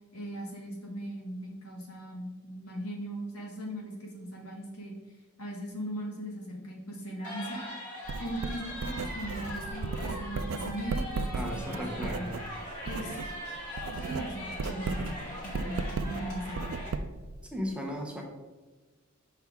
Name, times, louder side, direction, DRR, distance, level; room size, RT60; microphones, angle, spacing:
voice 1, 0.1-4.9 5.4-7.6 8.2-12.4 12.8-13.2 13.9-16.7, right 1 dB, 85° left, 0 dB, 1.5 m, -39 dB
sound 1, 7.2-16.9, equal, 35° left, 2.2 m, -41 dB
Writing, 8.1-13.3 13.6-17.3, right 4 dB, 70° right, 0.4 m, -35 dB
voice 2, 11.3-12.3 17.5-18.2, equal, 5° right, 0 dB, 0.6 m, -35 dB
6.0 x 5.5 x 3.5 m, 1.3 s
head